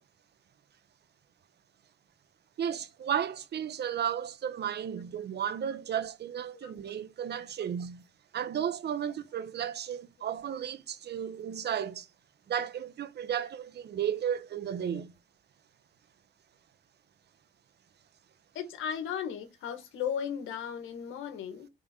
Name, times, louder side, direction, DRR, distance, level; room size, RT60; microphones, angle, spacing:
voice 1, 2.6-8.0 8.3-12.1 12.5-15.1, right 9 dB, 60° right, 1.0 m, -34 dB
voice 2, 18.5-21.7, left 8 dB, 85° left, 1.9 m, -36 dB
7.6 x 4.0 x 6.2 m
cardioid pair, 90°, 20 cm